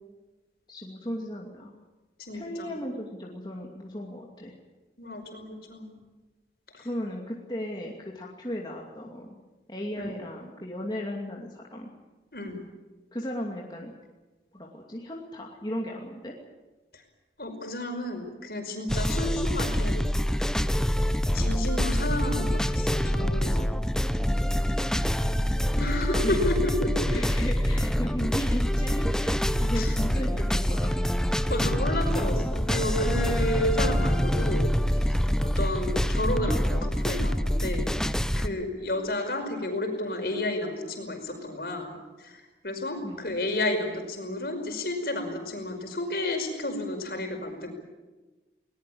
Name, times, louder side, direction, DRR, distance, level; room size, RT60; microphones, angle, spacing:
voice 1, 0.7-1.7 2.3-4.5 6.8-9.4 9.7-11.9 13.1-13.9 14.5-16.3 18.8-19.0 24.7-24.9 26.0-26.5 27.1-29.3 29.6-31.1 35.3-35.5 38.4-38.6 43.0-43.3, equal, 25° left, -1 dB, 2.6 m, -36 dB
voice 2, 2.2-2.7 5.0-6.0 6.7-6.9 10.0-10.1 12.3-12.6 17.4-20.1 21.3-23.8 25.7-27.1 29.8-29.9 31.5-34.7 35.0-35.1 35.4-37.9 38.4-47.7, left 1 dB, 60° left, 5 dB, 5.4 m, -31 dB
sound 1, 18.9-38.5, equal, 5° left, 0.6 m, -26 dB
21.0 x 20.0 x 8.7 m, 1.2 s
head